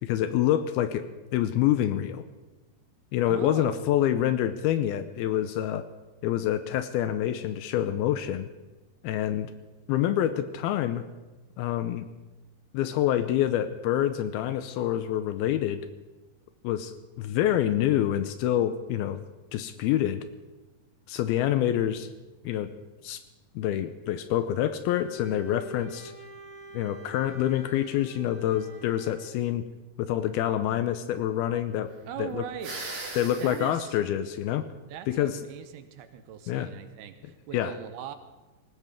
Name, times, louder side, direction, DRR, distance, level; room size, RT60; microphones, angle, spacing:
voice 1, 0.0-2.2 3.1-5.8 6.2-8.5 9.0-9.5 9.9-11.1 11.6-12.1 12.7-15.9 16.6-19.2 19.5-20.2 21.1-22.1 22.4-22.7 23.0-23.2 23.6-26.1 26.7-29.7 30.0-31.9 32.2-32.4 33.2-34.7 35.1-35.4 36.5-36.7 37.5-37.7, left 11 dB, 80° left, 11 dB, 2.4 m, -27 dB
voice 2, 3.3-3.8 32.0-32.8 33.3-34.0 34.9-38.2, right 9 dB, 75° right, 9 dB, 2.8 m, -40 dB
Bowed string instrument, 24.8-29.3, right 3 dB, 40° left, 7.2 m, -46 dB
sound 1, 32.6-33.7, right 2 dB, 45° right, 5.2 m, -38 dB
19.5 x 17.5 x 3.6 m, 1.1 s
omnidirectional pair, 4.8 m